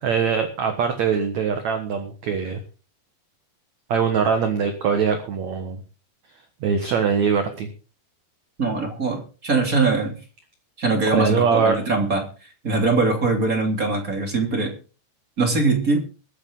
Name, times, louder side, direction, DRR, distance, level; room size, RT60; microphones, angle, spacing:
voice 1, 0.0-2.6 3.9-5.8 6.6-7.7 11.1-11.8, right 6 dB, 60° right, 6 dB, 1.9 m, -22 dB
voice 2, 8.6-10.2 10.8-12.3 12.6-14.7 15.4-16.0, right 3 dB, 25° right, 2 dB, 2.3 m, -22 dB
22.5 x 8.6 x 3.9 m, 0.34 s
omnidirectional pair, 5.1 m